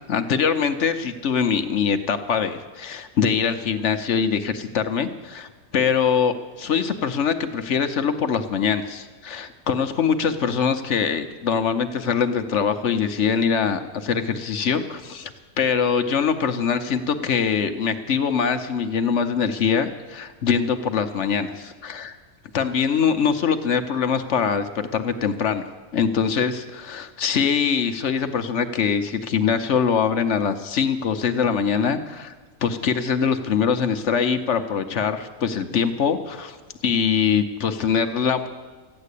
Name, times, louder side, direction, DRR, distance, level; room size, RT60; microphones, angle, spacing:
voice 1, 0.1-15.3 15.6-22.2 22.5-32.3 32.6-36.6 36.8-38.5, left 6 dB, 60° left, 8 dB, 1.0 m, -23 dB
14.5 x 9.7 x 8.3 m, 1.3 s
omnidirectional pair, 1.6 m